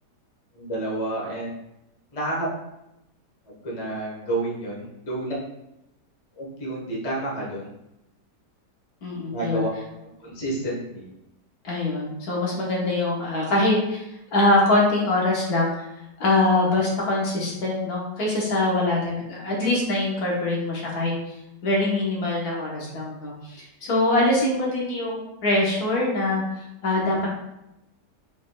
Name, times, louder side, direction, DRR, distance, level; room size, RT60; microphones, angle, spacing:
voice 1, 0.5-1.5 2.1-2.5 3.5-5.4 6.4-7.7 9.3-11.1, right 2 dB, 25° left, -4 dB, 1.0 m, -30 dB
voice 2, 9.0-9.7 11.6-14.0 14.3-15.9 16.2-21.3 21.6-26.4 26.8-27.3, left 2 dB, 65° left, -4 dB, 1.5 m, -23 dB
5.2 x 3.6 x 2.2 m, 0.87 s
omnidirectional pair, 1.8 m